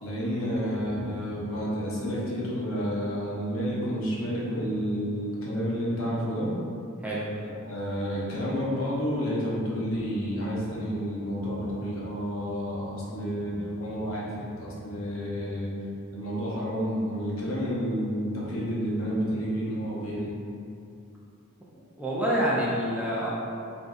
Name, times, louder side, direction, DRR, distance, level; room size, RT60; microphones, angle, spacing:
voice 1, 0.0-6.5 7.4-15.7 16.1-20.4, equal, 70° left, -6 dB, 0.8 m, -30 dB
voice 2, 22.0-23.3, equal, 5° right, -7 dB, 0.4 m, -27 dB
3.1 x 2.7 x 3.6 m, 2.6 s
head